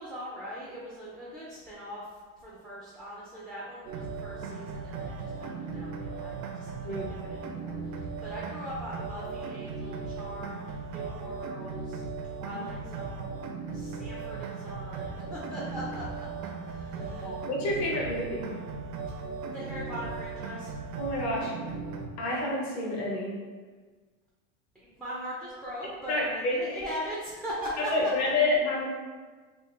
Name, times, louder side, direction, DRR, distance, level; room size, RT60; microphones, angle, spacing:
voice 1, 0.0-2.1 2.4-12.0 12.4-16.3 16.6-17.4 19.5-20.7 24.7-27.9, equal, ahead, -6 dB, 0.4 m, -40 dB
sound 1, 3.8-22.1, right 4 dB, 80° right, 0.6 m, -37 dB
voice 2, 16.9-18.5 21.0-21.5 22.2-23.3 26.1-26.6 27.9-28.9, left 2 dB, 45° left, -3 dB, 1.0 m, -29 dB
3.6 x 2.5 x 3.1 m, 1.4 s
supercardioid pair, 125°, 40 cm